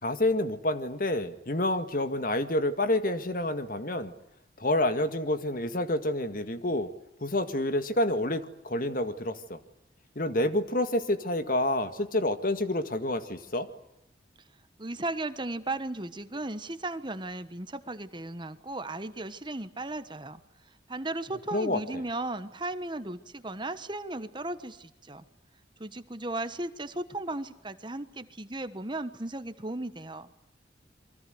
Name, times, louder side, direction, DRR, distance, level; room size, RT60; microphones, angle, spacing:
voice 1, 0.0-4.1 4.6-6.9 7.2-9.6 10.2-13.7 21.5-22.0, left 1 dB, 50° left, 10 dB, 2.0 m, -28 dB
voice 2, 14.8-20.4 20.9-25.2 25.8-30.3, right 2 dB, 25° right, 11 dB, 1.3 m, -36 dB
28.5 x 24.0 x 8.0 m, 0.85 s
head